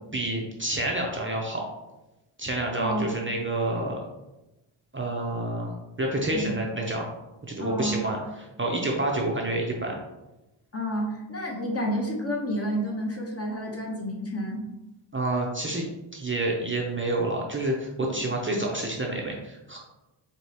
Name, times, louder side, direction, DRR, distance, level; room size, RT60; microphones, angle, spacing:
voice 1, 0.1-1.6 2.4-4.0 4.9-5.7 6.0-7.1 7.4-8.2 8.6-10.0 15.1-19.8, right 1 dB, 25° right, -1 dB, 0.6 m, -28 dB
voice 2, 2.8-3.1 6.3-6.5 7.6-8.0 10.7-14.6 18.1-18.2, equal, 30° left, -1 dB, 0.8 m, -30 dB
4.7 x 2.9 x 2.8 m, 0.99 s
wide cardioid pair, 115°, 49 cm